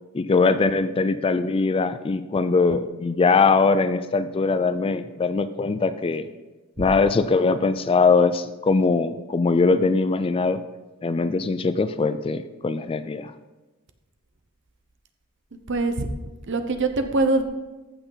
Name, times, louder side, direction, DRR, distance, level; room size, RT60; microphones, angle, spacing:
voice 1, 0.1-6.3 6.8-10.6 11.0-13.3, left 4 dB, 25° left, 12 dB, 0.3 m, -21 dB
voice 2, 15.7-16.1 16.5-17.4, right 2 dB, 55° right, 8 dB, 0.9 m, -23 dB
14.5 x 6.1 x 4.0 m, 1.2 s
head